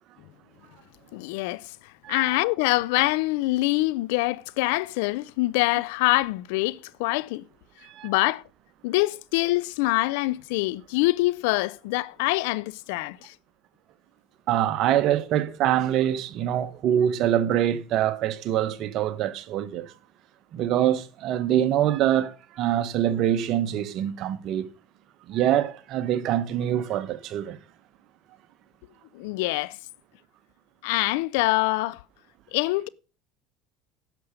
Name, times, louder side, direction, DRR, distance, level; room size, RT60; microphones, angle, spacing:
voice 1, 1.1-1.6 2.1-7.4 8.0-8.4 8.8-13.3 29.1-29.8 30.8-32.0 32.5-32.9, left 20 dB, 80° left, 0.5 m, -25 dB
voice 2, 7.8-8.1 14.5-19.9 20.5-24.7 25.3-27.6, right 11 dB, 60° right, 1.1 m, -24 dB
11.0 x 6.8 x 5.1 m
supercardioid pair, 100°, 0 cm